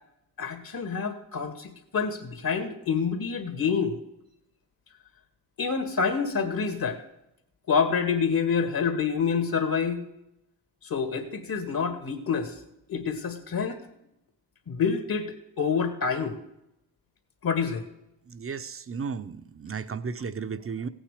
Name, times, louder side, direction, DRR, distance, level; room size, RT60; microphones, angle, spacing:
voice 1, 0.4-4.0 5.6-7.0 7.7-10.1 10.8-12.6 12.9-13.8 14.7-16.4 17.4-17.9, left 6 dB, 55° left, 7 dB, 2.2 m, -27 dB
voice 2, 18.3-20.9, right 5 dB, 30° right, 11 dB, 0.8 m, -34 dB
15.5 x 9.0 x 5.0 m, 0.83 s
cardioid pair, 75°, 42 cm